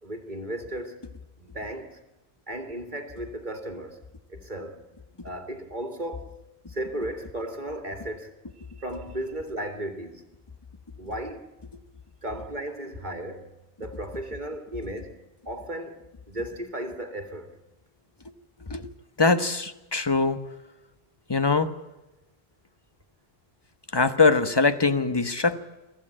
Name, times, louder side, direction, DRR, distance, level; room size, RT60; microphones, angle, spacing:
voice 1, 0.0-1.0 1.4-2.0 2.5-4.0 4.3-4.8 5.2-6.3 6.7-10.2 11.0-11.4 12.2-13.5 13.8-17.6, right 1 dB, 45° right, 2.6 m, -35 dB
voice 2, 19.2-20.4 21.3-21.7 23.9-25.6, left 4 dB, 25° left, 1.3 m, -22 dB
24.5 x 15.0 x 10.0 m
omnidirectional pair, 1.0 m